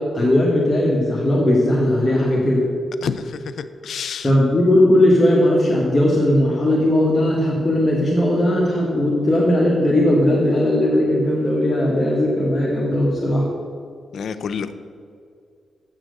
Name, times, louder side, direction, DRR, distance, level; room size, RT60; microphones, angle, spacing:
voice 1, 0.0-2.7 4.2-13.4, left 1 dB, 25° left, -5 dB, 1.6 m, -18 dB
voice 2, 3.0-4.3 14.1-14.7, left 6 dB, 70° left, 11 dB, 0.5 m, -29 dB
7.8 x 6.2 x 6.5 m, 2.4 s
cardioid pair, 75°, 0 cm